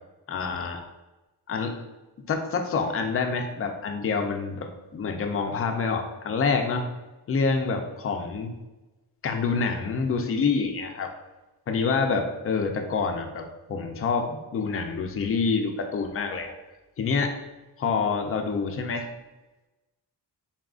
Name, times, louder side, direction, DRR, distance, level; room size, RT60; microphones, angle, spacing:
voice 1, 0.3-0.8 1.5-1.8 2.3-4.6 4.9-6.9 7.3-8.5 9.2-11.1 11.7-16.5 17.0-17.4 17.8-19.1, left 4 dB, 35° left, 4 dB, 0.4 m, -27 dB
4.1 x 3.6 x 2.3 m, 1.1 s
wide cardioid pair, 175°, 39 cm